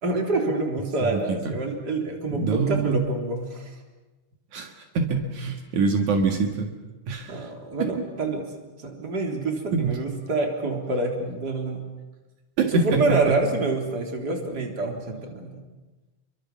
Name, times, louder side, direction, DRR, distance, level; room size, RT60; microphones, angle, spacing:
voice 1, 0.0-3.7 7.3-8.4 8.8-11.8 12.7-15.6, right 2 dB, 30° right, 2 dB, 4.0 m, -27 dB
voice 2, 1.0-1.5 2.3-3.1 4.5-6.7 7.1-7.5 9.7-10.0 12.6-13.4, right 4 dB, 70° right, 3 dB, 3.2 m, -25 dB
29.0 x 23.5 x 7.3 m, 1.2 s
omnidirectional pair, 3.6 m